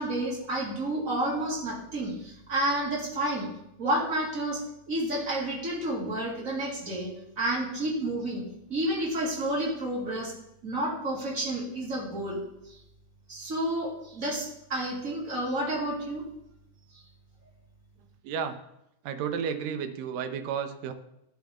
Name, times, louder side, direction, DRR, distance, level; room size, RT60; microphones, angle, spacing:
voice 1, 0.0-3.5 3.8-4.6 4.9-8.4 8.7-10.3 10.6-12.4 12.7-12.8 13.3-16.2, right 1 dB, 30° right, -3 dB, 1.8 m, -30 dB
voice 2, 18.2-18.6 19.1-20.9, right 7 dB, 80° right, 8 dB, 2.4 m, -32 dB
15.5 x 5.2 x 3.5 m, 0.82 s
omnidirectional pair, 4.0 m